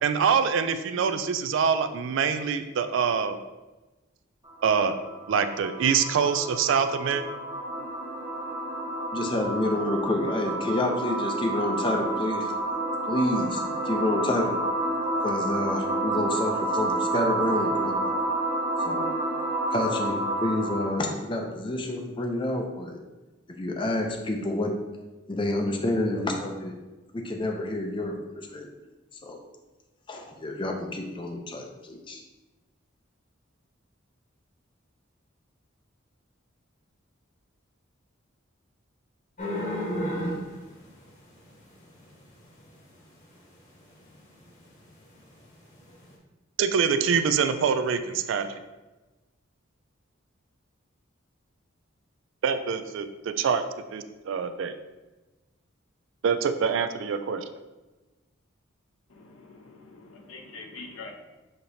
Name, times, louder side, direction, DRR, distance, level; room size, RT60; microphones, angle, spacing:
voice 1, 0.0-3.4 4.6-5.0 5.3-7.2 46.6-48.6 52.4-53.6 53.9-54.7 56.2-57.4, right 6 dB, 65° right, 10 dB, 0.3 m, -25 dB
sound 1, 4.4-21.1, right 2 dB, 25° right, 1.3 m, -29 dB
voice 2, 9.1-12.5 13.1-14.5 15.2-18.2 18.8-19.1 19.7-23.0 23.6-24.7 25.3-26.7 27.2-28.2 28.5-28.7 29.2-29.4 30.1-32.2, left 1 dB, 25° left, 3 dB, 0.5 m, -28 dB
sound 2, 39.4-42.2 42.6-42.7 43.7-44.2 44.4-44.5 44.9-45.0 45.6-45.7 45.9-46.1, equal, 40° left, 1.0 m, -31 dB
voice 3, 59.1-61.1, left 3 dB, 85° left, 2 dB, 0.8 m, -44 dB
6.5 x 2.9 x 2.7 m, 1.1 s
head